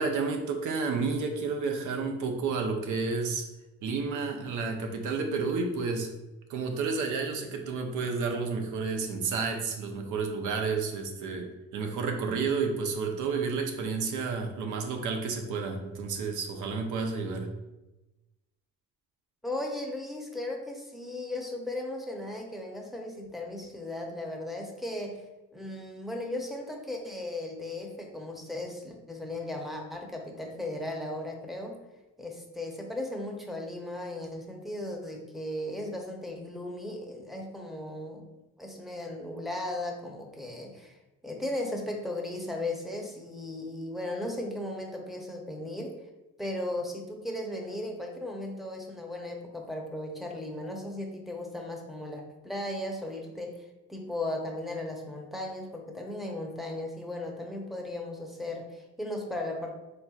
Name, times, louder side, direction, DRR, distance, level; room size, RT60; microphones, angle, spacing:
voice 1, 0.0-3.5 3.8-6.1 6.5-17.5, right 4 dB, 85° right, 4 dB, 0.6 m, -31 dB
voice 2, 19.4-25.2 25.5-31.8 32.2-38.3 38.6-41.0 41.2-45.9 46.4-59.7, left 1 dB, ahead, 0 dB, 0.7 m, -36 dB
4.2 x 3.3 x 2.4 m, 1.0 s
cardioid pair, 90°, 30 cm